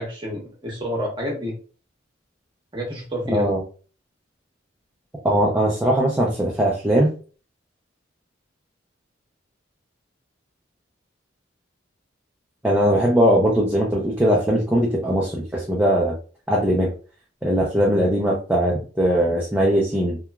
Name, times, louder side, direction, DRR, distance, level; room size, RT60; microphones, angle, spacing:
voice 1, 0.0-1.5 2.7-3.5, equal, 25° right, -2 dB, 0.9 m, -29 dB
voice 2, 3.3-3.6 5.2-7.1 12.6-16.1 16.5-16.9 17.4-20.2, equal, 10° right, -3 dB, 0.4 m, -20 dB
2.9 x 2.2 x 2.2 m, 0.37 s
head